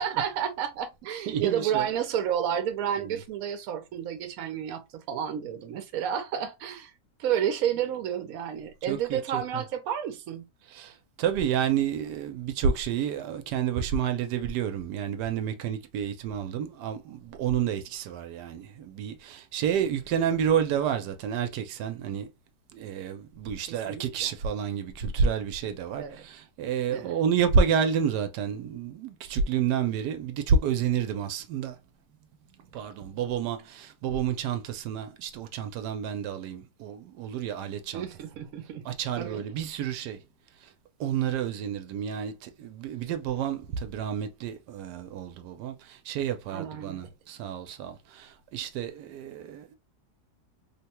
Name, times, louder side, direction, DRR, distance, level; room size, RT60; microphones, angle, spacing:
voice 1, 0.0-6.9 7.2-10.5 23.7-24.3 26.0-26.3 26.9-27.1 37.9-38.8 39.2-39.4 46.5-47.0, right 9 dB, 70° right, 1.0 m, -31 dB
voice 2, 1.3-1.9 3.0-3.2 8.8-9.6 10.7-22.3 22.7-31.8 32.7-38.1 38.8-40.2 40.6-40.7 41.0-49.8, right 7 dB, 85° right, 1.2 m, -29 dB
3.3 x 2.2 x 2.9 m
omnidirectional pair, 1.7 m